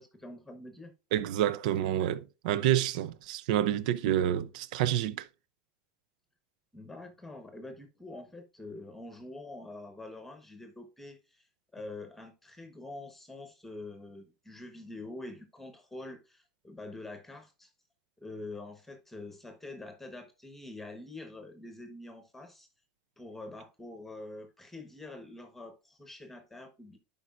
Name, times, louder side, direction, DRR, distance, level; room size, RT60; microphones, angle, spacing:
voice 1, 0.0-0.9 6.7-11.5 11.7-17.7 18.2-22.7 23.2-27.0, left 2 dB, 5° left, 1.1 m, -45 dB
voice 2, 1.1-5.3, right 11 dB, 75° right, 0.5 m, -28 dB
11.0 x 5.1 x 2.4 m
supercardioid pair, 130°, 4 cm